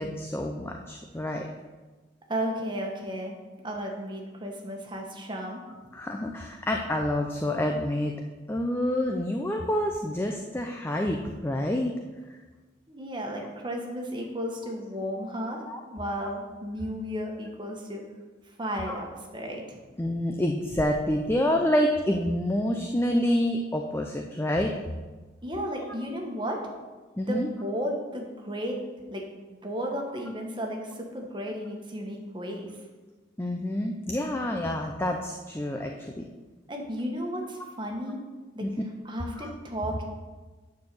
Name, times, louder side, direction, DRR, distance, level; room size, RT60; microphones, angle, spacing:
voice 1, 0.0-1.5 5.9-8.1 8.5-11.9 13.4-13.5 15.7-15.8 18.9-19.0 20.0-24.7 27.2-27.5 33.4-36.2 38.6-38.7 39.4-39.5, left 1 dB, 15° left, 2 dB, 0.5 m, -28 dB
voice 2, 2.3-3.3 3.6-5.6 12.9-15.6 15.9-18.0 18.6-19.1 19.3-19.8 25.4-26.6 27.3-28.8 29.1-32.7 36.7-38.2 38.5-38.7 39.0-40.0, equal, 25° right, 0 dB, 1.4 m, -33 dB
9.4 x 4.5 x 6.9 m, 1.3 s
head